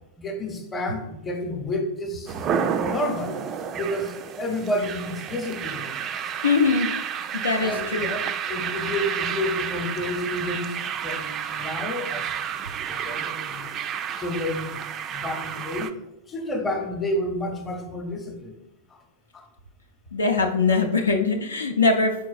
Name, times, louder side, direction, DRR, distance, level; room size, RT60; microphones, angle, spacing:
voice 1, 0.2-2.5 2.8-3.4 3.7-5.9 7.6-10.8 11.0-12.3 12.7-13.7 14.2-14.8 15.1-16.0 16.3-18.5 19.3-19.5, left 1 dB, 20° left, 4 dB, 0.8 m, -30 dB
sound 1, 2.3-15.9, right 8 dB, 30° right, 0.3 m, -31 dB
voice 2, 6.4-6.9 7.3-8.1 20.1-22.2, left 4 dB, 75° left, 3 dB, 0.4 m, -22 dB
4.5 x 4.5 x 2.4 m, 0.89 s
figure-of-eight pair, 90°, 0 cm